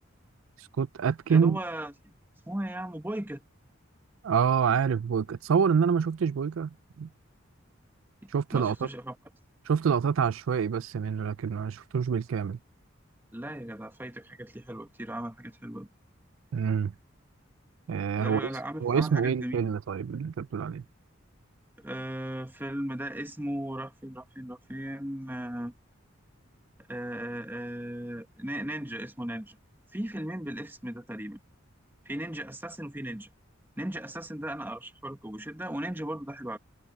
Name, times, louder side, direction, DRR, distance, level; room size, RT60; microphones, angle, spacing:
voice 1, 0.6-1.6 4.2-7.1 8.3-8.9 9.7-12.6 16.5-16.9 17.9-18.5 18.8-20.8, right 6 dB, 80° right, 0.4 m, -27 dB
voice 2, 1.3-1.9 2.5-3.4 8.2-9.2 13.3-15.9 18.2-19.7 21.8-25.7 26.9-29.6 29.9-31.4 32.0-33.3 33.8-36.6, right 1 dB, 10° right, 1.3 m, -37 dB
head